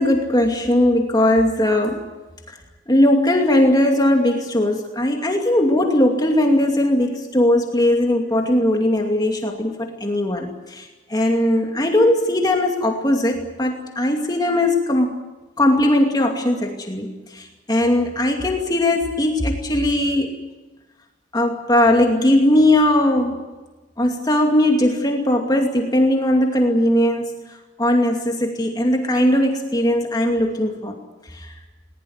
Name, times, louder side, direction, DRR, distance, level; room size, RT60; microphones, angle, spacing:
voice 1, 0.0-2.1 2.5-2.6 2.9-15.2 15.6-20.4 21.3-23.4 24.0-31.0 31.3-31.5, left 1 dB, 20° left, 2 dB, 2.5 m, -19 dB
21.0 x 20.0 x 9.6 m, 1.2 s
head